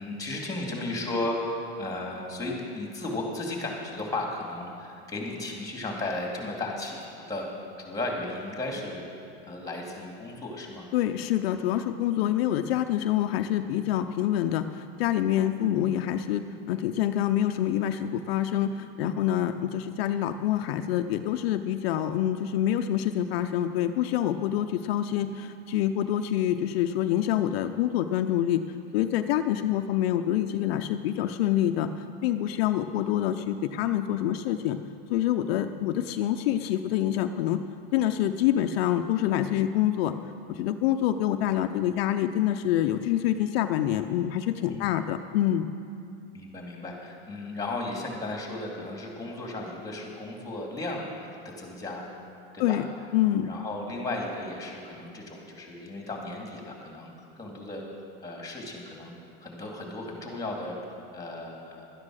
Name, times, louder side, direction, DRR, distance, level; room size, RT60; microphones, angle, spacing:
voice 1, 0.0-7.5 7.8-9.0 9.5-10.9 44.7-44.9 46.3-51.3 51.6-52.0 52.5-52.8 53.4-57.1 57.4-57.8 58.2-61.9, left 2 dB, 10° left, 0 dB, 2.6 m, -35 dB
voice 2, 10.9-28.6 28.9-31.9 32.2-34.8 35.1-37.6 37.9-40.1 40.5-45.7 52.6-52.9 53.1-53.5, left 11 dB, 75° left, 8 dB, 0.6 m, -26 dB
12.0 x 9.8 x 6.4 m, 2.5 s
supercardioid pair, 125°, 30 cm